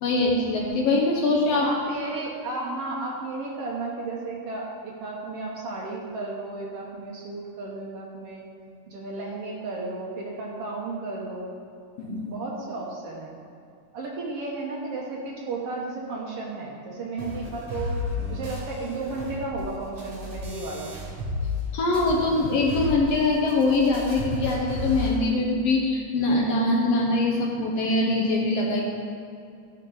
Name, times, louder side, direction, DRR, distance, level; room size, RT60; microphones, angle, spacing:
voice 1, 0.0-1.7 12.0-12.3 21.7-28.8, left 2 dB, 65° left, -1 dB, 1.8 m, -23 dB
voice 2, 1.5-8.4 8.9-11.5 12.3-13.4 13.9-18.0 18.3-20.9, right 3 dB, 65° right, -2 dB, 1.7 m, -33 dB
sound 1, 17.2-21.7 21.9-25.2, left 2 dB, 45° right, 2.3 m, -33 dB
14.0 x 5.7 x 3.8 m, 2.4 s
omnidirectional pair, 3.4 m